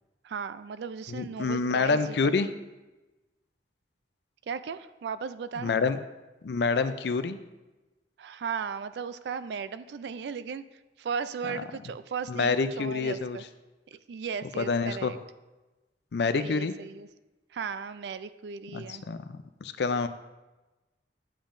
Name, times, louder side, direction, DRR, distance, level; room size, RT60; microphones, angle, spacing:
voice 1, 0.2-2.5 4.5-5.8 8.2-10.6 11.0-13.4 13.9-15.2 16.3-17.1 17.5-19.0, right 6 dB, 70° right, 14 dB, 0.3 m, -36 dB
voice 2, 1.1-2.5 5.6-6.0 6.4-7.4 11.5-11.6 12.3-13.4 14.6-15.1 16.1-16.7 18.7-20.1, left 4 dB, 65° left, 11 dB, 0.4 m, -27 dB
8.7 x 7.2 x 2.6 m, 1.1 s
head